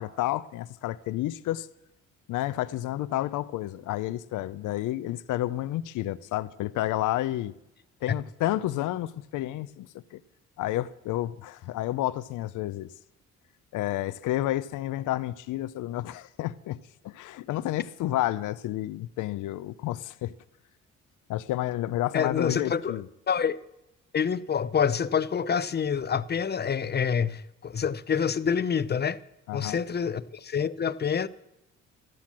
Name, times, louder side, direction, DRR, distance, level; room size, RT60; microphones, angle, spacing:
voice 1, 0.0-1.7 2.3-7.5 8.0-10.2 10.6-12.9 13.7-16.8 17.0-20.3 21.3-23.0 29.5-29.8, left 14 dB, 85° left, 0.6 m, -30 dB
voice 2, 22.1-23.0 23.3-23.6 24.1-29.2 29.5-31.3, left 7 dB, 35° left, 0.7 m, -27 dB
13.5 x 12.0 x 7.3 m
cardioid pair, 90°, 30 cm